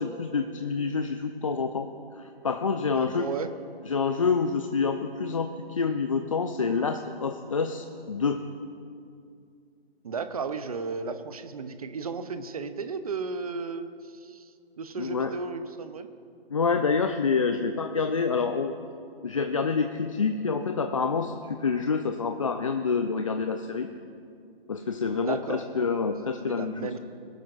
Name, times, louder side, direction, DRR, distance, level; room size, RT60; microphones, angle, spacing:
voice 1, 0.0-3.3 3.9-8.4 15.0-15.3 16.5-18.7 19.2-23.9 24.7-26.9, left 5 dB, 35° left, 6 dB, 0.4 m, -27 dB
voice 2, 2.9-3.5 10.0-14.5 14.8-16.1 25.2-25.6 26.5-27.0, right 4 dB, 35° right, 10 dB, 0.6 m, -34 dB
21.0 x 12.0 x 2.4 m, 2.3 s
figure-of-eight pair, 150°, 31 cm